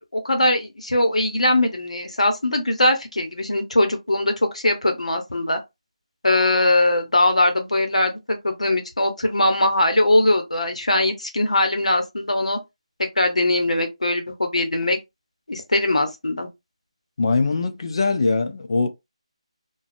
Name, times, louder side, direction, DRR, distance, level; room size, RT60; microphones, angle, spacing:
voice 1, 0.1-5.6 6.2-12.6 13.0-15.0 15.5-16.5, left 1 dB, 85° left, 0.9 m, -21 dB
voice 2, 17.2-18.9, left 3 dB, 50° left, 0.6 m, -21 dB
2.5 x 2.3 x 2.5 m
figure-of-eight pair, 165°, 3 cm